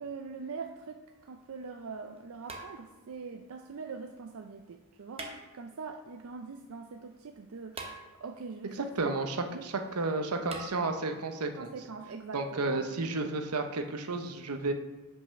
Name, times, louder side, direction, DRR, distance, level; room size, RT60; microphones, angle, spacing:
voice 1, 0.0-7.8 8.2-9.2 9.5-9.7 11.6-12.9 13.2-13.4, right 4 dB, 65° right, 4 dB, 0.5 m, -43 dB
sound 1, 1.1-1.2 2.5-3.2 5.1-5.9 7.7-8.5 10.5-10.7, right 3 dB, 25° right, 0.8 m, -43 dB
voice 2, 8.8-9.4 9.6-11.7 12.3-14.7, right 3 dB, 90° right, 6 dB, 0.8 m, -32 dB
5.6 x 5.3 x 5.7 m, 1.1 s
head